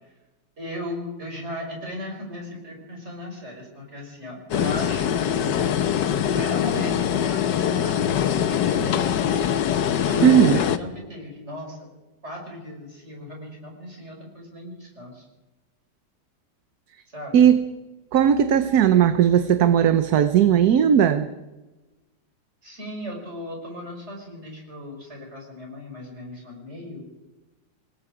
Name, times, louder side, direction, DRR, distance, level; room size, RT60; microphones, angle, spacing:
voice 1, 0.6-5.9 6.3-9.6 10.0-11.9 12.2-15.2 17.1-17.5 22.6-27.0, left 1 dB, 40° right, 0 dB, 6.1 m, -36 dB
sound 1, 4.5-10.8, left 9 dB, 85° left, 1.6 m, -23 dB
voice 2, 10.2-10.6 17.3-17.6 18.1-21.3, right 9 dB, 65° right, 10 dB, 1.3 m, -17 dB
28.0 x 19.5 x 5.0 m, 1.1 s
omnidirectional pair, 1.8 m